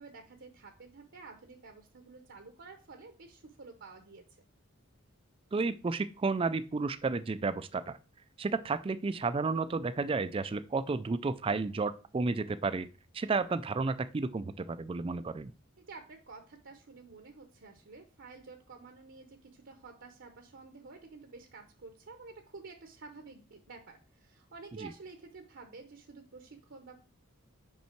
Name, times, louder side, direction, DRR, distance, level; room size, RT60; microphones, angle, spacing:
voice 1, 0.0-4.2 15.8-27.1, right 4 dB, 55° right, 5 dB, 0.8 m, -51 dB
voice 2, 5.5-8.0 8.4-12.9 13.1-15.5 24.8-24.9, right 4 dB, 25° right, 12 dB, 0.3 m, -32 dB
5.6 x 5.4 x 4.4 m, 0.35 s
head